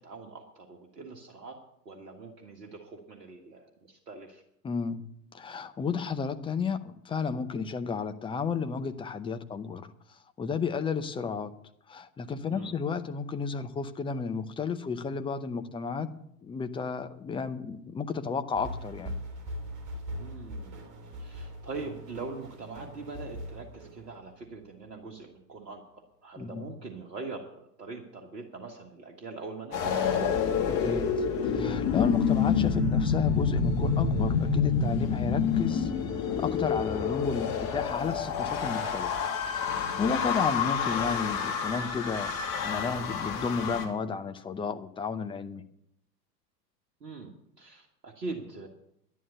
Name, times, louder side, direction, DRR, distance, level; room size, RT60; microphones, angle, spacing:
voice 1, 0.0-1.6 1.9-4.4 12.5-12.7 20.2-20.7 21.2-30.4 40.1-40.5 47.0-47.3 47.6-48.7, right 3 dB, 70° right, 2 dB, 1.7 m, -42 dB
voice 2, 4.6-5.0 5.3-9.9 10.4-11.5 11.9-16.1 16.4-19.1 26.4-26.7 30.8-31.1 31.4-35.9 36.2-39.2 39.6-45.6, left 5 dB, 10° left, 9 dB, 0.6 m, -32 dB
sound 1, 18.5-24.5, equal, 35° right, 3.4 m, -41 dB
sound 2, 29.7-43.9, left 6 dB, 40° left, 2.5 m, -28 dB
11.0 x 11.0 x 6.8 m, 0.75 s
figure-of-eight pair, 90°, 50 cm